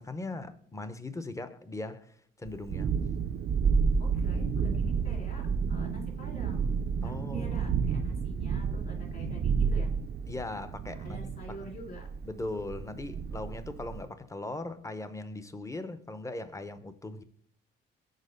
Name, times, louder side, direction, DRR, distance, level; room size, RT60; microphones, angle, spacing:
voice 1, 0.0-2.9 7.0-7.7 9.1-9.4 10.3-11.6 12.2-17.2, left 2 dB, 15° left, 0.7 m, -39 dB
Thunderstorm, 2.5-14.0, right 6 dB, 55° right, 0.5 m, -30 dB
voice 2, 4.0-9.9 11.0-12.1, left 1 dB, 50° left, 2.9 m, -46 dB
6.5 x 4.6 x 5.1 m
cardioid pair, 90°, 20 cm